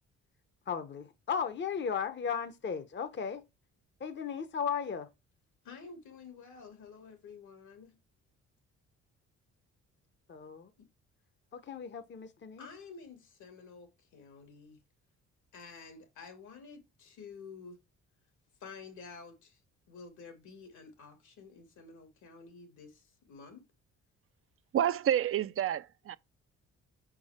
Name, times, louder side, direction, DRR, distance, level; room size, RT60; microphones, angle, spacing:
voice 1, 0.7-3.4 4.0-5.1 10.3-10.7 11.5-12.7, left 6 dB, 40° left, 0.8 m, -36 dB
voice 2, 5.6-8.0 10.8-10.9 12.6-14.8 15.5-17.8 18.6-19.6 19.9-23.7, left 5 dB, 75° left, 2.3 m, -50 dB
voice 3, 24.7-26.2, right 10 dB, 45° right, 0.5 m, -29 dB
5.6 x 4.7 x 4.3 m
cardioid pair, 90°, 30 cm